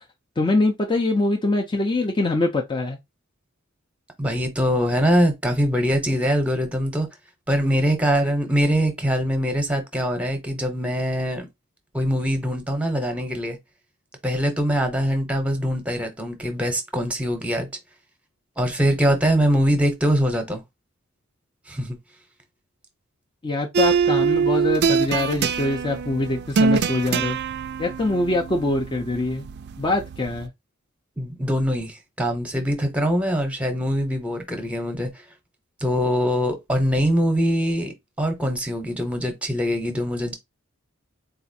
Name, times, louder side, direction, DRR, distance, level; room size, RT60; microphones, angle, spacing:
voice 1, 0.4-3.0 23.4-27.4 27.8-29.5 29.8-30.5, left 2 dB, 20° left, 0.5 m, -23 dB
voice 2, 4.2-7.1 7.5-11.5 11.9-13.6 14.2-17.7 18.6-20.6 21.7-22.0 31.2-35.1 35.8-40.3, equal, 5° right, 0.8 m, -23 dB
sound 1, 23.7-30.5, right 5 dB, 50° right, 0.4 m, -24 dB
4.1 x 2.4 x 2.7 m
head